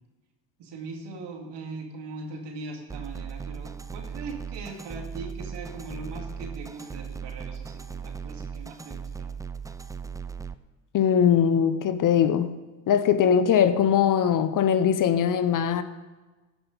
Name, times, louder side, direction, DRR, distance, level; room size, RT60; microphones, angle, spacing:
voice 1, 0.6-9.3, right 3 dB, 65° right, 2 dB, 2.5 m, -40 dB
sound 1, 2.9-10.5, right 6 dB, 10° right, 0.3 m, -37 dB
voice 2, 10.9-12.5 12.9-15.8, left 8 dB, 45° left, 12 dB, 0.8 m, -21 dB
16.5 x 6.2 x 5.3 m, 1.2 s
supercardioid pair, 70°, 44 cm